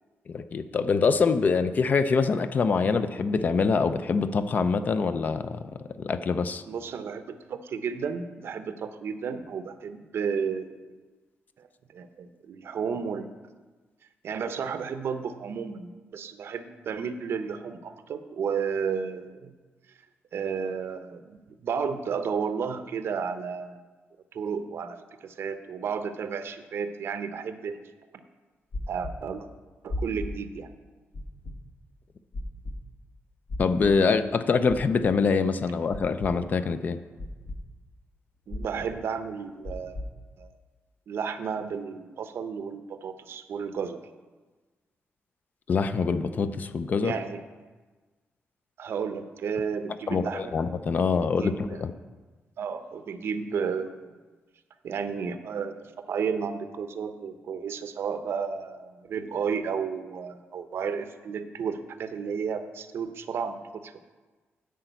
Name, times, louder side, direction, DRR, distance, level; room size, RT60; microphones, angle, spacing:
voice 1, 0.3-6.6 33.6-37.0 45.7-47.1 50.1-51.9, left 5 dB, 40° left, 11 dB, 0.4 m, -25 dB
voice 2, 6.7-11.0 11.6-11.7 11.9-13.3 14.2-19.5 20.3-23.8 24.3-27.8 28.9-29.5 29.8-30.7 38.5-40.0 40.4-40.5 41.1-44.0 47.0-47.4 48.8-50.5 51.0-51.8 52.6-54.1 54.8-63.9, right 6 dB, 65° right, 9 dB, 0.7 m, -32 dB
sound 1, 28.7-29.1 29.9-30.3 31.1-31.5 32.3-32.7 33.5-33.9 34.7-35.1 35.9-36.3 37.2-37.6 38.5-38.9 39.6-40.1, left 2 dB, 55° left, 1.1 m, -34 dB
10.0 x 4.9 x 8.0 m, 1.3 s
wide cardioid pair, 180°, 4 cm